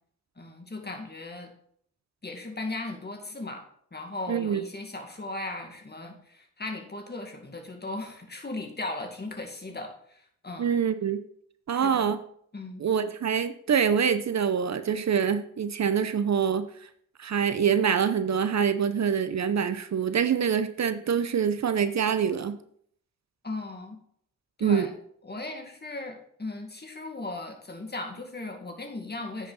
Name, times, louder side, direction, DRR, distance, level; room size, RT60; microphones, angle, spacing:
voice 1, 0.4-1.5 2.2-3.6 3.9-10.7 11.7-12.1 12.5-12.9 23.4-24.0 24.6-24.9 25.2-29.5, left 2 dB, 30° left, 4 dB, 2.0 m, -37 dB
voice 2, 4.3-4.6 10.6-11.2 11.7-12.2 12.8-16.7 17.2-22.6 24.6-24.9, right 7 dB, 55° right, 11 dB, 0.7 m, -25 dB
9.4 x 6.2 x 4.1 m, 0.63 s
cardioid pair, 60°, 32 cm